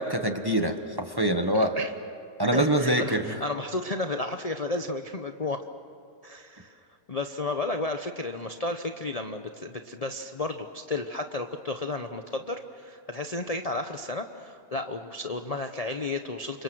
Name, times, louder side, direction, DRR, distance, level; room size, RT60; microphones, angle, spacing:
voice 1, 0.0-1.7 2.4-3.4, right 1 dB, 15° right, 6 dB, 1.3 m, -25 dB
voice 2, 1.5-1.9 2.5-5.6 6.2-16.6, left 2 dB, 30° left, 5 dB, 0.8 m, -33 dB
29.0 x 26.5 x 6.2 m, 2.7 s
omnidirectional pair, 1.5 m